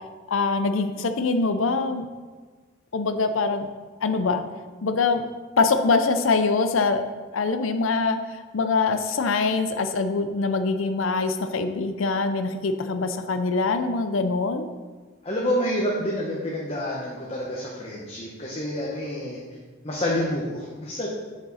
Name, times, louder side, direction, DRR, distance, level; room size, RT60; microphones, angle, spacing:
voice 1, 0.3-2.1 2.9-3.7 4.0-4.4 4.8-5.2 5.6-7.0 7.3-8.2 8.5-14.7, left 4 dB, 80° left, 9 dB, 0.6 m, -23 dB
voice 2, 15.2-19.4 19.8-21.1, left 1 dB, 30° left, -4 dB, 1.2 m, -28 dB
11.0 x 5.3 x 4.2 m, 1.4 s
head